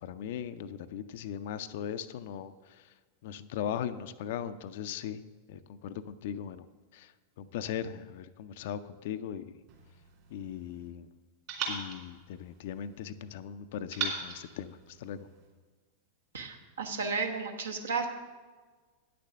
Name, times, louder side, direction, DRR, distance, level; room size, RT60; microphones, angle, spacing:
voice 1, 0.0-2.9 3.2-5.2 5.5-6.7 6.9-7.1 7.4-9.6 10.3-11.1 11.7-15.3, left 9 dB, 55° left, 13 dB, 0.4 m, -39 dB
sound 1, 9.7-10.9 11.5-13.1 13.9-15.5, right 6 dB, 45° right, 3.0 m, -40 dB
voice 2, 16.3-18.1, right 4 dB, 65° right, 3 dB, 1.1 m, -33 dB
9.5 x 6.8 x 6.6 m, 1.4 s
figure-of-eight pair, 90°, 0 cm